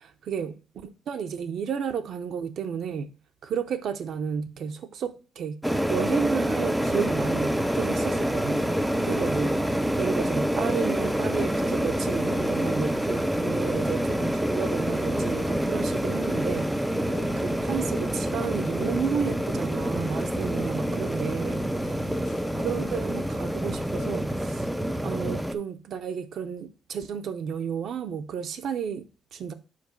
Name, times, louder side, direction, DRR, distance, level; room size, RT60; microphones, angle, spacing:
voice 1, 0.3-3.2 3.4-8.6 9.0-21.7 22.5-24.7 25.0-29.5, right 7 dB, 50° right, 0.6 m, -32 dB
sound 1, 5.6-25.5, equal, ahead, 0.3 m, -27 dB
sound 2, 6.9-24.1, left 6 dB, 70° left, 1.0 m, -47 dB
5.1 x 4.5 x 5.2 m
cardioid pair, 175°, 0 cm